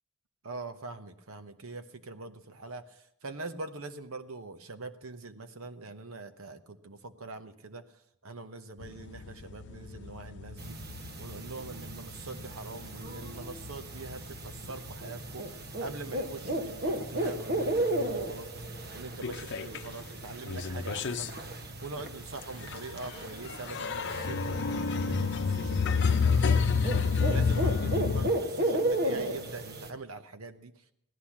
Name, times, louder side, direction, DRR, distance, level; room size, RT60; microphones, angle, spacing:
voice 1, 0.4-7.8 8.2-10.8 11.2-18.5 18.9-21.3 21.8-26.5 27.3-30.7, right 3 dB, 75° right, 9 dB, 1.0 m, -43 dB
sound 1, 8.8-15.5 15.8-16.9 17.3-17.4 17.8-17.9 18.1-19.9 20.3-28.3, left 5 dB, 55° left, 0.7 m, -30 dB
sound 2, 10.6-29.9, right 1 dB, 50° right, 1.2 m, -35 dB
16.5 x 12.0 x 7.3 m, 0.71 s
head